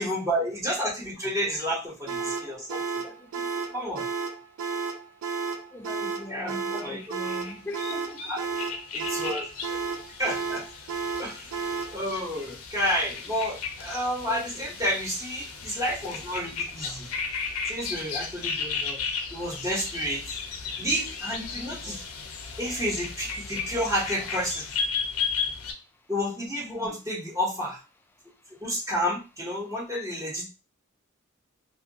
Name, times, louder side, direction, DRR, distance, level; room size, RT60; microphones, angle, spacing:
voice 1, 0.0-2.8 3.7-4.1 6.3-7.0 8.3-8.4 8.9-9.5 10.2-10.6 11.2-11.5 11.9-17.1 17.7-19.0 19.3-20.2 20.8-22.0 22.6-24.6 26.1-27.8 28.6-30.4, equal, 15° right, 1.0 m, -30 dB
sound 1, 2.1-12.0, right 5 dB, 65° right, 0.4 m, -32 dB
voice 2, 3.0-3.8 5.3-5.4 5.7-8.3 10.5-10.6 12.1-12.6 14.3-14.8 21.8-22.0 26.7-27.0, left 1 dB, 10° left, 0.3 m, -43 dB
sound 2, 6.8-25.7, left 5 dB, 85° left, 0.5 m, -35 dB
2.6 x 2.4 x 2.7 m
head